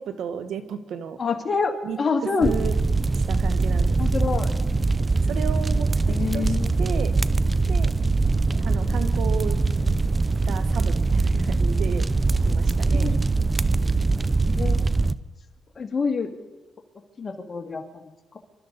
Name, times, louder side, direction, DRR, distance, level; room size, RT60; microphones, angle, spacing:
voice 1, 0.0-1.2 1.8-2.8 3.1-4.4 5.2-7.1 7.7-7.9 8.5-9.6 10.5-12.0 12.4-13.2, right 8 dB, 80° right, 11 dB, 1.2 m, -34 dB
voice 2, 1.2-2.5 4.0-4.5 6.1-6.7 12.9-13.2 14.5-14.9 15.8-16.3 17.2-17.8, left 4 dB, 40° left, 4 dB, 2.1 m, -26 dB
sound 1, 2.4-15.1, right 3 dB, 30° right, 0.5 m, -22 dB
26.5 x 12.5 x 4.0 m, 1.2 s
cardioid pair, 70°, 0 cm